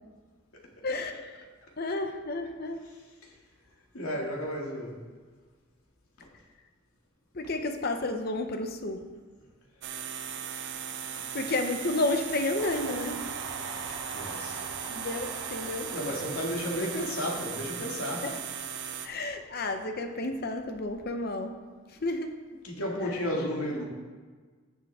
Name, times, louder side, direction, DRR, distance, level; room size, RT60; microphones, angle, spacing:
voice 1, 0.8-1.4 1.8-2.8 7.3-9.0 11.3-13.2 13.9-14.0 14.9-15.9 18.2-18.4 19.0-21.6 22.0-22.4, left 2 dB, 45° left, 6 dB, 0.7 m, -31 dB
voice 2, 3.9-5.0 6.2-6.3 11.2-11.3 14.1-14.7 15.9-18.2 22.6-23.8, left 1 dB, 85° left, -1 dB, 2.3 m, -33 dB
sound 1, 9.8-19.1, right 8 dB, 55° right, 0.8 m, -38 dB
Train, 12.6-20.0 20.4-21.2, right 4 dB, 80° right, 1.1 m, -44 dB
14.5 x 7.4 x 3.6 m, 1.4 s
head